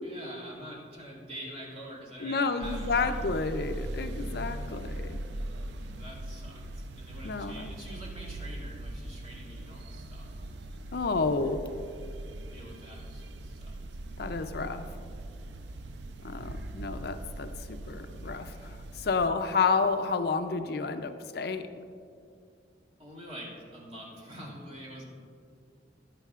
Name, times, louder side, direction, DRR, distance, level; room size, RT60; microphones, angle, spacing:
voice 1, 0.0-3.1 6.0-10.4 11.2-11.4 12.5-14.0 23.0-25.0, equal, 35° right, -4 dB, 2.3 m, -46 dB
voice 2, 2.2-5.2 7.2-7.7 10.9-11.6 14.2-14.8 16.2-17.5 17.9-21.9, left 4 dB, 60° left, 8 dB, 0.5 m, -30 dB
sound 1, 2.6-19.3, right 1 dB, 85° right, 0.5 m, -40 dB
15.0 x 10.5 x 2.4 m, 2.4 s
head